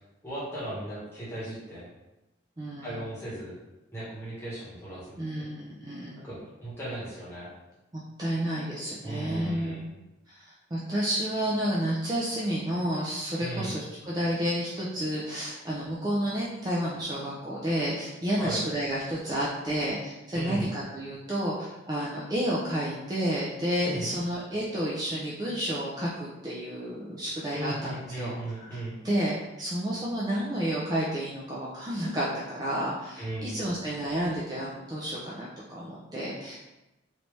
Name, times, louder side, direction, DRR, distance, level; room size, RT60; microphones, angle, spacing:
voice 1, 0.2-1.9 2.8-3.5 3.9-5.5 6.2-7.5 9.0-9.9 13.4-13.7 18.4-18.6 20.3-20.7 23.8-24.1 27.5-29.0 33.2-33.6, right 1 dB, 10° left, -9 dB, 1.2 m, -36 dB
voice 2, 2.6-2.9 5.2-6.2 7.9-9.8 10.3-28.8 29.0-36.6, equal, 20° right, -7 dB, 0.4 m, -31 dB
3.2 x 2.6 x 3.1 m, 0.99 s
head